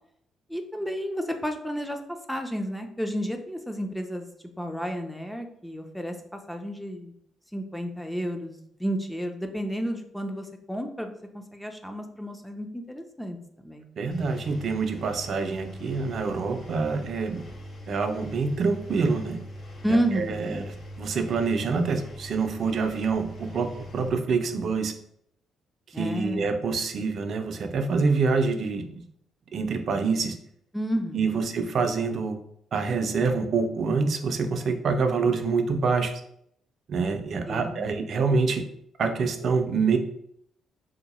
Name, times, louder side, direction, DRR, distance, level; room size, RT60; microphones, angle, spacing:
voice 1, 0.5-2.0 2.3-4.3 4.6-6.1 6.5-7.1 7.5-13.4 13.6-13.9 19.8-20.7 25.9-26.5 30.7-31.5 37.5-37.9, equal, 5° left, 4 dB, 0.4 m, -31 dB
voice 2, 14.0-17.4 17.9-19.4 19.9-20.6 21.0-24.9 26.0-28.9 29.5-30.3 31.1-32.4 32.7-36.2 36.9-38.6 39.0-40.0, right 4 dB, 55° right, 6 dB, 0.4 m, -26 dB
Engine, 14.1-24.1, equal, 45° left, 0.7 m, -42 dB
2.7 x 2.2 x 4.1 m, 0.71 s
cardioid pair, 90°, 0 cm